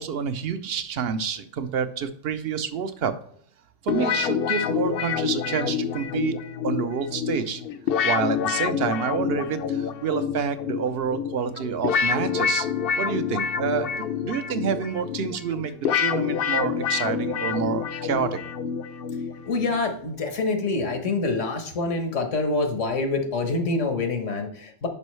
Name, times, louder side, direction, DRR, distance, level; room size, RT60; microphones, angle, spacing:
voice 1, 0.0-3.2 3.8-6.3 6.6-7.6 8.0-12.7 13.0-15.7 16.0-18.4, right 7 dB, 60° right, 11 dB, 0.8 m, -28 dB
sound 1, 3.9-19.8, left 7 dB, 60° left, 0.7 m, -27 dB
voice 2, 19.4-24.9, left 3 dB, 85° left, 5 dB, 1.5 m, -26 dB
11.0 x 5.3 x 3.2 m, 0.62 s
omnidirectional pair, 1.2 m